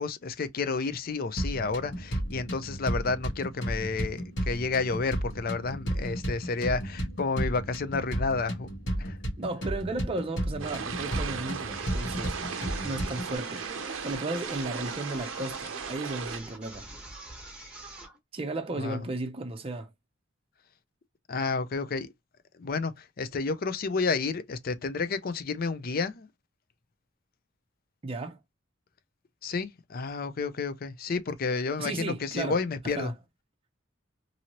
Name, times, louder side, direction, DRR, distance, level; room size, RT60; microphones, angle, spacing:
voice 1, 0.0-8.7 9.0-9.2 18.7-19.0 21.3-22.1 22.6-26.3 29.4-33.1, left 4 dB, 50° left, 0.5 m, -31 dB
sound 1, 1.4-13.4, right 1 dB, 65° left, 1.2 m, -33 dB
voice 2, 9.4-12.4 12.8-13.7 14.0-16.9 18.3-19.9 28.0-28.4 31.8-33.1, right 2 dB, 30° right, 0.5 m, -34 dB
sound 2, 10.6-16.4, right 6 dB, 80° right, 0.5 m, -37 dB
sound 3, 11.7-18.2, right 1 dB, 5° right, 1.1 m, -45 dB
2.8 x 2.7 x 2.9 m
head